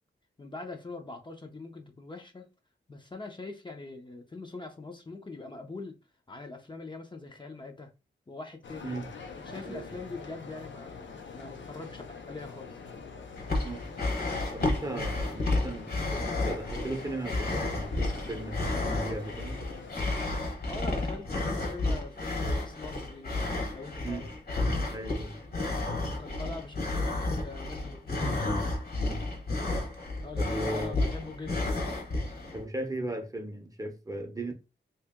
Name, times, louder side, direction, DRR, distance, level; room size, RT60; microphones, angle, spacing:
voice 1, 0.4-2.5 2.9-5.9 6.3-7.9 8.3-8.9 9.4-12.8 20.7-23.3 23.7-24.3 26.0-27.1 27.4-28.3 30.2-31.9, left 3 dB, 25° left, 0.5 m, -43 dB
sound 1, 8.6-20.0, left 4 dB, 85° left, 0.7 m, -45 dB
sound 2, 13.4-32.6, left 2 dB, 55° left, 1.1 m, -31 dB
voice 2, 14.5-19.6 24.0-24.3 24.9-25.4 29.0-29.3 30.4-31.0 32.5-34.5, right 2 dB, 20° right, 0.6 m, -37 dB
2.9 x 2.8 x 3.5 m
wide cardioid pair, 140°, 19 cm